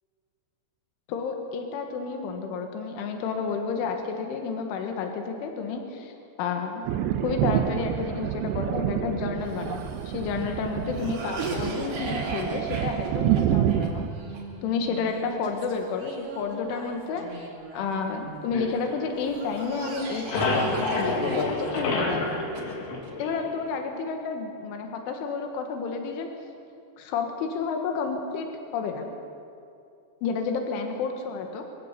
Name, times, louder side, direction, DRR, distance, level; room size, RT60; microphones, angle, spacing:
voice 1, 1.1-6.1 6.4-14.1 14.6-22.4 23.2-26.3 27.0-29.1 30.2-31.7, left 5 dB, 90° left, 4 dB, 4.1 m, -31 dB
Thunder, 6.9-14.1, right 11 dB, 80° right, 2.6 m, -28 dB
Cough, 9.4-18.6 19.2-23.1, right 2 dB, 40° right, 2.8 m, -38 dB
sound 1, 18.5-19.7 20.0-23.7, left 3 dB, 70° left, 4.9 m, -29 dB
23.0 x 15.5 x 8.3 m, 2.6 s
omnidirectional pair, 5.4 m